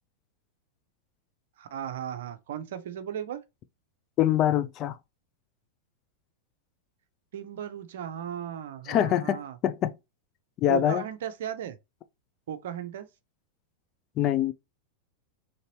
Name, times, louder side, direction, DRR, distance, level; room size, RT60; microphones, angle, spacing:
voice 1, 1.6-3.4 7.3-9.6 10.7-11.8 12.5-13.1, right 9 dB, 55° right, 0.6 m, -36 dB
voice 2, 4.2-5.0 8.9-9.9 10.6-11.0 14.2-14.5, left 11 dB, 35° left, 0.4 m, -24 dB
3.9 x 3.2 x 2.9 m
figure-of-eight pair, 90°, 0 cm